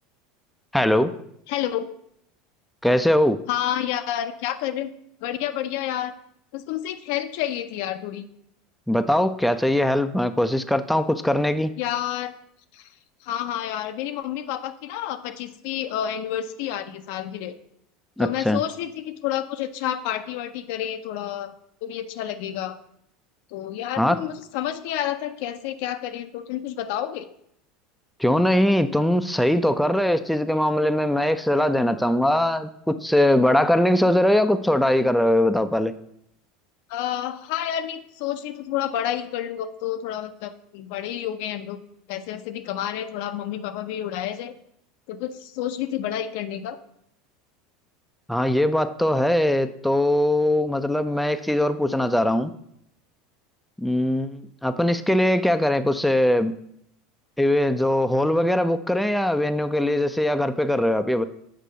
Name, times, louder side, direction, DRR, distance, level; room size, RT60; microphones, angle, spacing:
voice 1, 0.7-1.1 2.8-3.4 8.9-11.7 18.2-18.6 24.0-24.2 28.2-35.9 48.3-52.5 53.8-56.5 57.4-61.2, left 1 dB, ahead, 9 dB, 0.5 m, -21 dB
voice 2, 1.5-1.9 3.5-4.9 5.2-6.1 6.5-8.3 11.8-12.3 12.7-12.9 13.2-17.5 18.2-21.5 21.8-22.8 23.5-27.3 36.9-41.8 42.1-44.5 45.1-46.8, left 11 dB, 65° left, 9 dB, 0.5 m, -29 dB
6.7 x 4.6 x 5.0 m, 0.74 s
hypercardioid pair, 80°, 0 cm